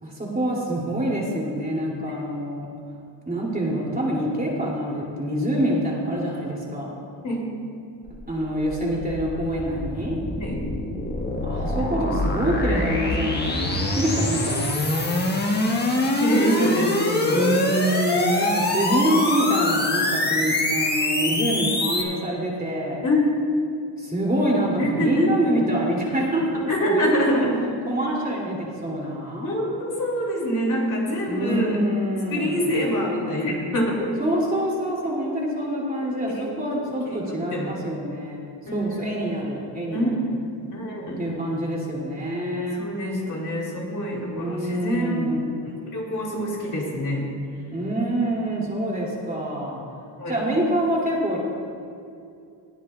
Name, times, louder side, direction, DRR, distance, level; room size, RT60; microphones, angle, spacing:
voice 1, 0.0-2.7 3.2-6.9 8.3-10.2 11.4-14.6 17.3-23.0 24.0-27.4 27.9-29.5 31.3-32.8 34.2-40.1 41.2-42.9 44.3-45.5 47.7-49.8 50.3-51.4, right 1 dB, 20° right, -4 dB, 2.9 m, -26 dB
sound 1, 8.1-22.0, left 2 dB, 20° left, 1.5 m, -25 dB
voice 2, 16.2-17.5 23.0-23.4 24.8-25.3 26.7-27.6 29.4-31.8 32.3-34.2 36.3-36.5 36.7-36.8 37.0-37.8 38.7-38.8 39.9-40.4 40.7-41.2 42.5-45.2 45.6-47.3 48.9-49.0 50.2-50.4, equal, 40° left, -3 dB, 2.8 m, -25 dB
20.0 x 12.0 x 2.4 m, 2.4 s
cardioid pair, 105°, 46 cm